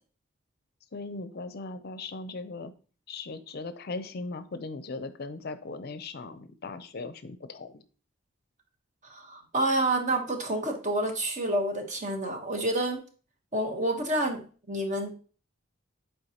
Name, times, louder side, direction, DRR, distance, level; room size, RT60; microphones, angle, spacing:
voice 1, 0.9-2.7 3.1-7.8, left 3 dB, 50° left, 11 dB, 0.5 m, -38 dB
voice 2, 9.1-13.0 13.5-15.2, right 1 dB, 35° right, 4 dB, 1.1 m, -28 dB
7.9 x 4.6 x 2.8 m, 0.38 s
head